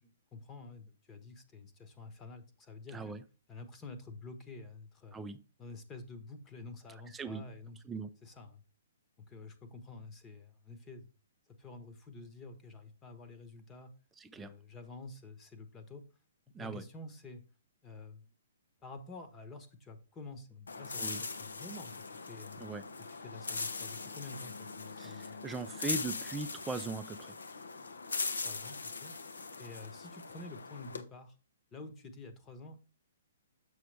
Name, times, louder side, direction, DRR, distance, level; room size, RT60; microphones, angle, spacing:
voice 1, 0.0-3.1 3.5-5.2 5.6-7.8 8.2-8.6 9.3-11.1 11.5-13.9 14.3-16.0 16.6-17.4 17.8-18.3 18.8-21.0 21.3-22.6 23.1-25.4 28.4-29.1 29.6-31.3 31.7-32.8, left 3 dB, 20° left, 1.0 m, -49 dB
voice 2, 2.9-3.2 5.1-5.4 7.1-7.4 7.8-8.1 14.2-14.5 16.5-16.8 21.0-21.2 22.6-22.8 25.0-27.3, right 3 dB, 10° right, 0.5 m, -39 dB
sound 1, 20.7-31.0, left 4 dB, 85° left, 0.8 m, -41 dB
6.7 x 6.4 x 3.3 m
hypercardioid pair, 135°, 0 cm